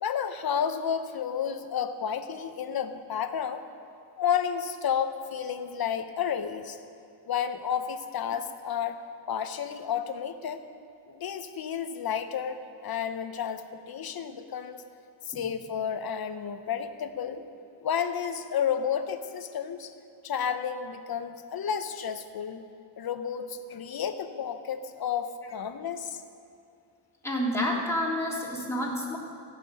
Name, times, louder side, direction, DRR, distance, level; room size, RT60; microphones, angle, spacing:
voice 1, 0.0-3.6 4.2-6.8 7.3-9.0 9.3-10.6 11.1-12.6 12.8-14.8 15.3-17.4 17.8-19.9 20.2-22.6 23.0-26.2, left 8 dB, 50° left, 9 dB, 1.0 m, -31 dB
voice 2, 27.2-29.2, left 1 dB, 5° left, -5 dB, 3.5 m, -29 dB
15.0 x 6.2 x 8.9 m, 2.6 s
cardioid pair, 80°, 47 cm